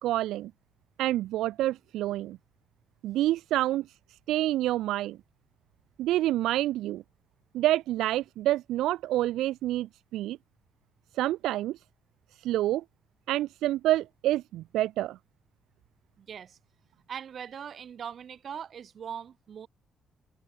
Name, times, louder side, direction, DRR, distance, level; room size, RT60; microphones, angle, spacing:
voice 1, 0.0-0.5 1.0-2.4 3.0-3.8 4.3-5.2 6.0-7.0 7.5-10.4 11.2-11.8 12.4-12.8 13.3-15.2, right 14 dB, 85° right, 3.3 m, -27 dB
voice 2, 16.2-16.6 17.1-19.7, right 8 dB, 55° right, 7.9 m, -40 dB
cardioid pair, 90°, 0 cm